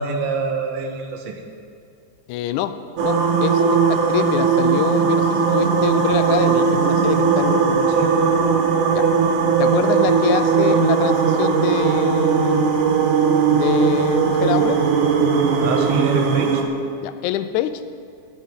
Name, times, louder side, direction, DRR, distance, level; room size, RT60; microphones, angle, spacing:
voice 1, 0.0-1.4 7.9-8.1 15.6-16.6, right 5 dB, 65° right, 3 dB, 2.2 m, -25 dB
voice 2, 2.3-7.9 8.9-9.1 9.6-12.8 13.5-14.8 17.0-17.8, left 12 dB, 80° left, 12 dB, 2.0 m, -25 dB
sound 1, 3.0-16.6, right 5 dB, 85° right, 2.5 m, -18 dB
19.0 x 10.0 x 3.7 m, 2.3 s
omnidirectional pair, 3.5 m